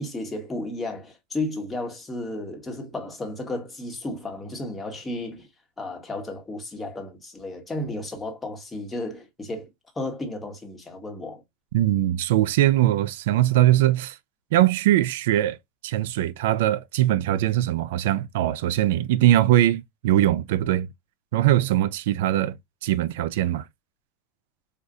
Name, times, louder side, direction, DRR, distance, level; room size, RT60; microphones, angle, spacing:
voice 1, 0.0-5.5 5.8-9.7 9.9-11.4, left 2 dB, 10° left, 1.2 m, -33 dB
voice 2, 11.7-14.2 14.5-15.6 15.8-20.9 21.3-23.7, right 13 dB, 80° right, 0.3 m, -21 dB
5.0 x 2.4 x 2.6 m
supercardioid pair, 145°, 0 cm